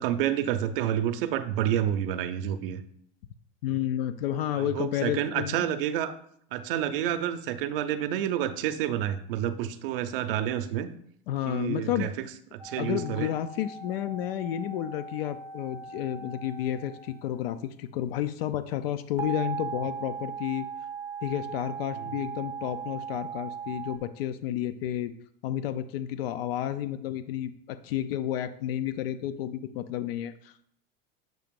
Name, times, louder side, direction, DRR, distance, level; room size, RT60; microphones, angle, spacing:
voice 1, 0.0-2.8 4.5-6.2 6.5-10.9 11.5-12.2 12.5-13.3 22.0-22.2, right 10 dB, 60° right, 11 dB, 0.6 m, -29 dB
voice 2, 3.6-5.6 11.3-12.1 12.8-20.7 21.2-25.1 25.4-30.7, left 11 dB, 70° left, 11 dB, 0.5 m, -31 dB
sound 1, 12.6-17.4 19.2-24.0, right 6 dB, 10° right, 0.5 m, -39 dB
7.5 x 2.9 x 5.2 m, 0.68 s
supercardioid pair, 165°, 31 cm